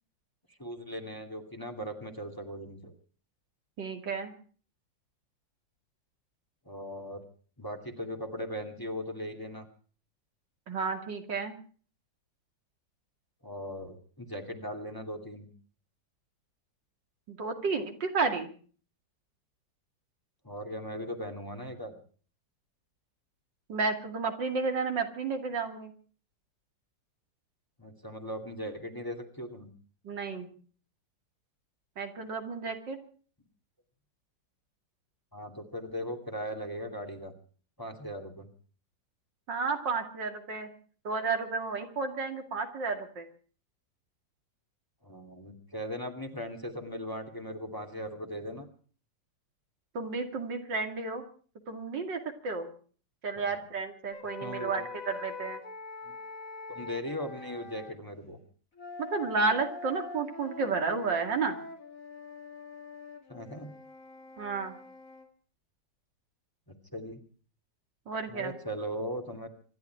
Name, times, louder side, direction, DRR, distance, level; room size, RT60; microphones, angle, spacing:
voice 1, 0.6-2.9 6.7-7.2 7.6-9.7 13.4-15.5 20.4-22.0 27.8-29.7 35.3-37.3 37.8-38.5 45.0-48.7 53.4-53.5 54.4-54.9 56.1-56.2 56.7-58.4 63.3-63.7 66.7-67.2 68.3-69.5, equal, 10° left, 4 dB, 2.4 m, -38 dB
voice 2, 3.8-4.3 10.7-11.5 17.3-18.5 23.7-25.9 30.0-30.5 32.0-33.0 39.5-40.7 41.0-43.3 49.9-51.2 51.7-52.7 53.2-55.6 59.0-61.6 64.4-64.8 68.1-68.6, right 4 dB, 80° right, 5 dB, 3.0 m, -32 dB
sound 1, 54.1-58.0 58.7-65.3, left 4 dB, 45° left, 2.9 m, -44 dB
26.0 x 12.0 x 4.6 m, 0.43 s
omnidirectional pair, 1.9 m